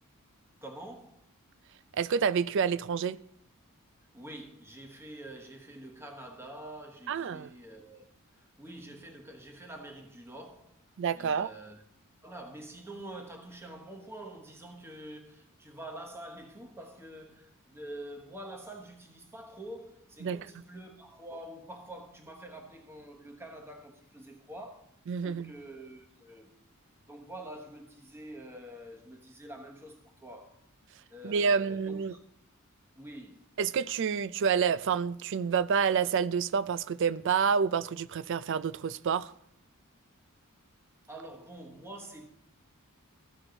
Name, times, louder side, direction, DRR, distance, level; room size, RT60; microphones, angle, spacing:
voice 1, 0.6-1.2 4.1-8.1 8.3-10.8 11.1-11.8 12.2-24.9 25.2-26.5 27.1-30.6 31.1-32.2 33.0-33.5 41.1-42.3, right 1 dB, 10° right, 1.0 m, -46 dB
voice 2, 1.9-3.2 7.1-7.5 11.0-11.5 20.2-20.4 25.1-25.5 31.2-32.2 33.6-39.3, right 6 dB, 55° right, 0.4 m, -28 dB
14.5 x 6.2 x 3.9 m
head